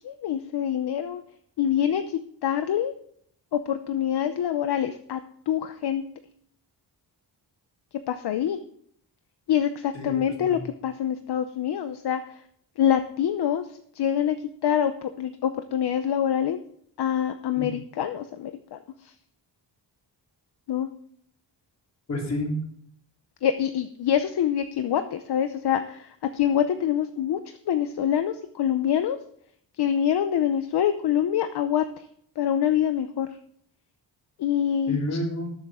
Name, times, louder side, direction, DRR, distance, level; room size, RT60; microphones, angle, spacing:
voice 1, 0.0-1.2 1.6-2.9 3.5-5.2 5.5-6.0 8.1-8.6 9.5-12.4 12.8-14.4 14.6-16.6 17.0-19.1 20.7-20.9 23.4-29.2 29.8-32.1 32.4-33.3 34.4-35.0, left 9 dB, 65° left, 9 dB, 0.8 m, -25 dB
voice 2, 9.9-10.6 17.6-17.7 22.1-22.6 34.9-35.5, left 1 dB, 40° left, -1 dB, 3.8 m, -30 dB
19.5 x 7.3 x 3.7 m, 0.66 s
wide cardioid pair, 165°, 42 cm